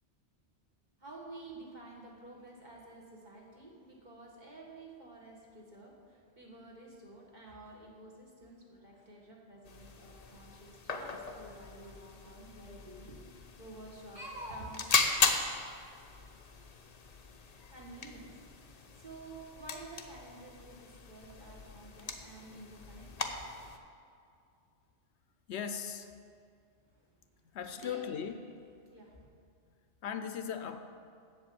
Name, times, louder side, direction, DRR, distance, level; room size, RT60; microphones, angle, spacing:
voice 1, 1.0-14.9 17.7-23.5 26.9-28.5 28.8-29.3, right 2 dB, 40° right, -2 dB, 1.8 m, -50 dB
sound 1, 9.7-23.8, left 4 dB, 40° left, 0.7 m, -37 dB
voice 2, 25.5-26.1 27.5-28.4 30.0-30.8, left 7 dB, 75° left, 9 dB, 0.9 m, -38 dB
7.8 x 7.3 x 8.5 m, 2.3 s
omnidirectional pair, 1.2 m